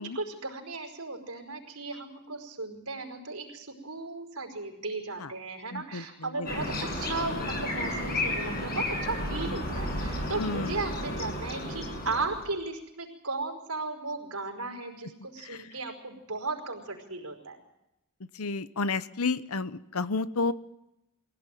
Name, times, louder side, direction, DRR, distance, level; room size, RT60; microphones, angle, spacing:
voice 1, 0.0-17.6, right 3 dB, 85° right, 3 dB, 5.0 m, -36 dB
voice 2, 5.7-6.5 10.4-10.8 15.4-15.7 18.3-20.5, left 3 dB, 75° left, 15 dB, 0.9 m, -31 dB
sound 1, 6.5-12.5, left 1 dB, 45° left, 7.7 m, -32 dB
24.0 x 17.0 x 9.2 m, 0.89 s
head